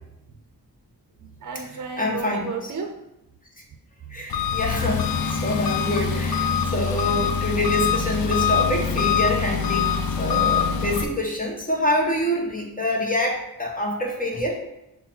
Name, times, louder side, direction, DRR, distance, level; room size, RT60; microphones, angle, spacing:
voice 1, 1.2-2.9 4.0-4.2, right 5 dB, 50° right, 4 dB, 0.6 m, -34 dB
voice 2, 2.0-2.5 4.1-9.9 10.2-14.6, left 1 dB, 20° left, -1 dB, 0.7 m, -26 dB
Engine, 4.3-11.0, left 7 dB, 65° left, 0.5 m, -24 dB
5.7 x 2.2 x 4.3 m, 0.87 s
wide cardioid pair, 145°, 39 cm